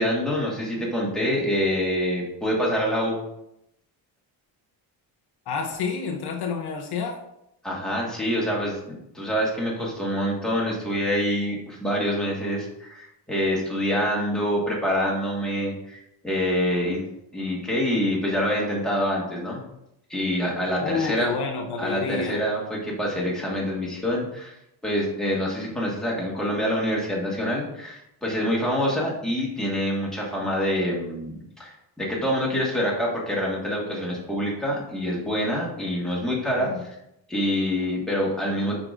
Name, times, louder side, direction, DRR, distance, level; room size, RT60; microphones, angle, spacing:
voice 1, 0.0-3.2 7.6-17.0 17.3-19.6 20.1-21.3 21.8-24.6 24.8-31.7 32.0-36.9 37.3-38.8, equal, ahead, -5 dB, 1.6 m, -26 dB
voice 2, 5.5-7.2 20.8-22.4 36.6-36.8, left 5 dB, 55° left, 2 dB, 0.8 m, -29 dB
9.6 x 4.9 x 2.5 m, 0.82 s
cardioid pair, 160°, 45 cm